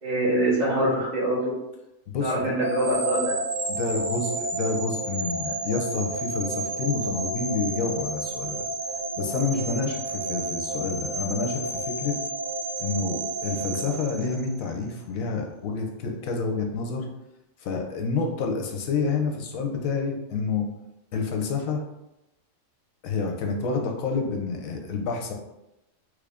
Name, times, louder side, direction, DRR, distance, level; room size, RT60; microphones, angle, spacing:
voice 1, 0.0-1.4 2.2-3.3, right 1 dB, 45° right, -7 dB, 1.3 m, -24 dB
voice 2, 2.1-2.5 3.7-8.6 9.2-12.2 12.8-17.1 17.6-20.7 21.1-21.8 23.0-25.3, left 4 dB, 75° left, 2 dB, 1.0 m, -28 dB
sound 1, 2.6-14.8, right 2 dB, 65° right, 0.4 m, -31 dB
3.3 x 2.5 x 3.4 m, 0.91 s
omnidirectional pair, 1.5 m